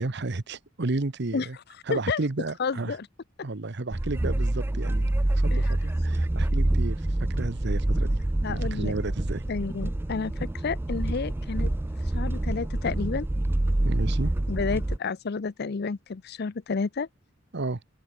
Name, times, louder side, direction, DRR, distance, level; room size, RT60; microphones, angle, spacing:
voice 1, 0.0-1.6 1.9-3.0 3.4-9.4 13.8-14.3 17.5-17.8, right 2 dB, 55° right, 1.0 m, -32 dB
voice 2, 2.6-3.1 5.5-5.7 8.4-8.9 9.5-11.7 12.1-13.3 14.5-17.1, left 5 dB, 50° left, 0.5 m, -30 dB
sound 1, 3.9-15.0, right 1 dB, 10° right, 0.3 m, -26 dB
open air
head